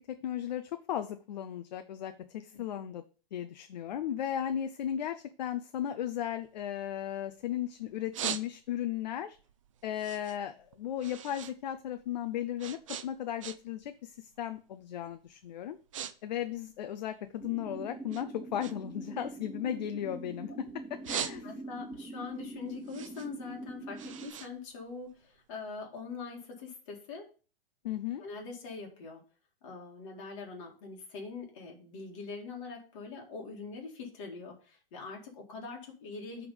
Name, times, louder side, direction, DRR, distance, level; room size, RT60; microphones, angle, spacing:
voice 1, 0.0-3.0 3.3-9.4 9.8-15.8 16.2-20.5 20.9-21.5 27.8-28.2, left 10 dB, 50° left, 9 dB, 0.5 m, -36 dB
voice 2, 2.5-2.8 21.4-27.3 28.2-29.2 29.6-36.5, left 4 dB, 35° left, 0 dB, 2.0 m, -43 dB
sound 1, 6.4-7.5 7.9-8.9 9.4-11.6 11.8-13.9 14.2-14.5 15.1-15.3 15.6-16.1 16.4-17.6 18.1-20.4 20.8-21.9 22.3-25.4, right 9 dB, 35° right, 0.4 m, -41 dB
sound 2, 17.4-24.3, right 2 dB, 5° left, 0.9 m, -44 dB
9.4 x 3.6 x 5.2 m, 0.37 s
hypercardioid pair, 170°, 29 cm